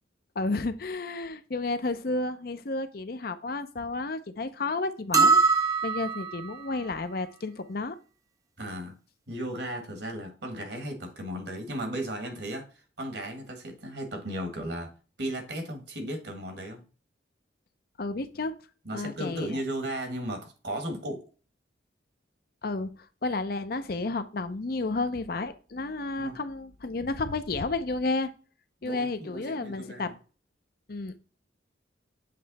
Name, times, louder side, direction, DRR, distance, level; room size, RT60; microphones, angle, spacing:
voice 1, 0.4-5.4 5.8-8.0 18.0-18.5 18.9-19.6 22.6-22.9 23.2-28.3 28.8-30.1 30.9-31.2, left 3 dB, 50° left, 0.6 m, -31 dB
sound 1, 5.1-6.5, right 4 dB, 20° right, 0.4 m, -22 dB
voice 2, 8.6-9.0 9.3-14.9 15.2-16.8 18.9-21.2 26.2-26.4 28.8-30.2, right 1 dB, 65° right, 1.7 m, -35 dB
7.6 x 3.2 x 4.0 m
head